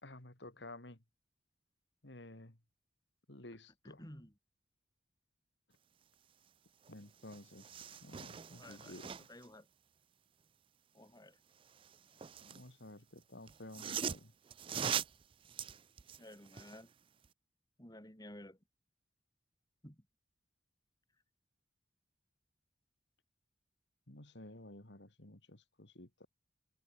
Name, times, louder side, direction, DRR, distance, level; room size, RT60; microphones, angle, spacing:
voice 1, 0.0-1.0 2.0-2.6 3.3-4.0 6.9-7.8 8.0-9.1 12.4-14.3 24.1-26.3, left 1 dB, 75° left, 3.0 m, -53 dB
voice 2, 3.8-4.3 8.6-9.0 9.3-9.7 10.9-11.4 16.2-16.9 17.8-18.6 19.8-20.1, left 1 dB, 20° left, 5.1 m, -53 dB
sound 1, 6.8-6.9 7.2-9.5 11.6-12.7 13.5-16.8 17.2-17.3, right 8 dB, 30° right, 0.4 m, -42 dB
head